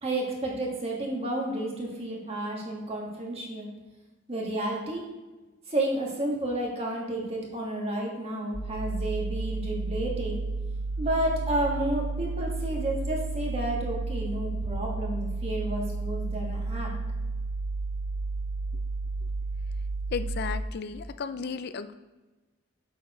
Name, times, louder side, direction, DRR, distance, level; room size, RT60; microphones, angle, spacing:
voice 1, 0.0-3.7 4.3-5.0 5.7-10.4 11.0-16.9, right 1 dB, 30° right, -2 dB, 1.5 m, -31 dB
sound 1, 8.5-20.5, right 3 dB, ahead, 1.8 m, -32 dB
voice 2, 20.1-21.9, left 5 dB, 50° left, 11 dB, 0.4 m, -34 dB
7.0 x 4.5 x 4.8 m, 1.2 s
head